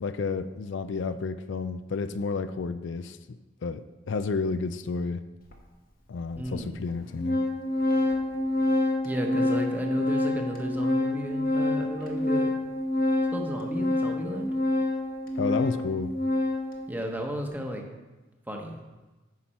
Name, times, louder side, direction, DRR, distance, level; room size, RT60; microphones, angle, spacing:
voice 1, 0.0-3.2 3.6-5.2 6.1-7.4 15.4-16.1, left 4 dB, 75° left, 12 dB, 0.4 m, -31 dB
Organ, 5.5-5.6 6.5-6.6 6.9-16.8, left 2 dB, 50° left, 1.0 m, -27 dB
voice 2, 6.3-6.8 9.0-12.5 13.3-14.5 16.9-17.9 18.5-18.8, equal, 10° right, 2 dB, 1.0 m, -33 dB
9.5 x 5.9 x 4.4 m, 1.2 s
head